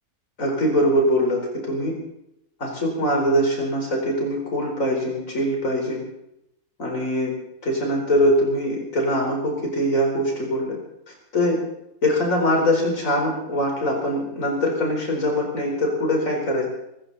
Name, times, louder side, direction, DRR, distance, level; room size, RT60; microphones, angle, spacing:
voice 1, 0.4-2.0 2.6-6.0 6.8-7.3 7.6-10.8 11.3-11.6 12.0-16.7, equal, 55° left, 0 dB, 4.8 m, -22 dB
23.5 x 14.5 x 4.2 m, 0.81 s
omnidirectional pair, 1.6 m